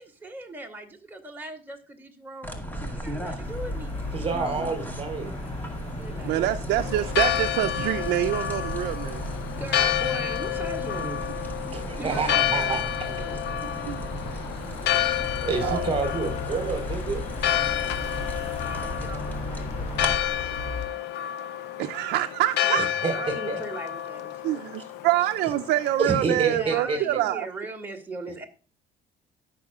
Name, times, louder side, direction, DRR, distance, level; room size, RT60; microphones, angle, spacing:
voice 1, 0.0-2.6 2.9-4.1 5.9-6.4 9.6-11.2 12.0-12.8 13.0-13.4 18.6-21.0 22.1-22.2 23.1-24.7 26.5-28.5, right 2 dB, 10° right, 2.5 m, -39 dB
sound 1, 2.4-20.1, equal, 10° left, 2.0 m, -36 dB
sound 2, 3.4-20.9, left 3 dB, 40° left, 2.8 m, -38 dB
voice 2, 4.1-5.3 11.7-12.8 14.3-14.5 15.4-17.2 22.7-23.1 23.5-23.6 26.0-27.0, right 4 dB, 30° right, 4.6 m, -28 dB
voice 3, 6.2-9.2 12.1-12.8 13.9-14.0 15.6-16.0 21.8-22.9 24.4-27.5, right 13 dB, 80° right, 0.6 m, -26 dB
Church bell, 6.8-26.2, left 12 dB, 85° left, 0.8 m, -30 dB
18.0 x 6.3 x 2.4 m
cardioid pair, 110°, 17 cm